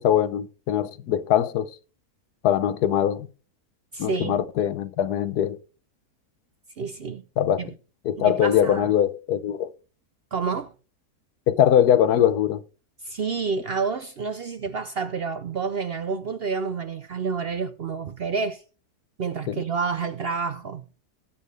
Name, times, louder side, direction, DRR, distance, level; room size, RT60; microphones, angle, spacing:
voice 1, 0.0-1.7 2.4-3.3 4.0-5.6 7.4-7.6 8.0-9.7 11.5-12.6 19.5-19.6, left 10 dB, 85° left, 1.4 m, -22 dB
voice 2, 3.9-4.4 6.8-7.2 7.6-7.7 8.2-8.9 10.3-10.7 13.0-18.6 19.2-20.9, right 5 dB, 55° right, 0.6 m, -29 dB
19.5 x 7.2 x 3.3 m
omnidirectional pair, 1.6 m